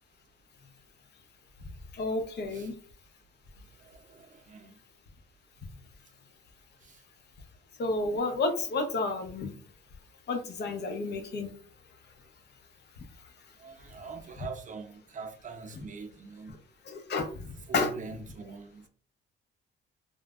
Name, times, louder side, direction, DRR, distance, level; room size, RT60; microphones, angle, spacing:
voice 1, 1.9-2.7 7.8-9.5 10.3-11.5 16.9-17.3 17.7-17.9, left 3 dB, 60° left, 0.8 m, -30 dB
voice 2, 3.7-4.8 6.8-7.0 13.6-16.6 17.7-18.9, right 5 dB, 40° right, 0.6 m, -43 dB
3.2 x 2.2 x 2.4 m
cardioid pair, 90°, 20 cm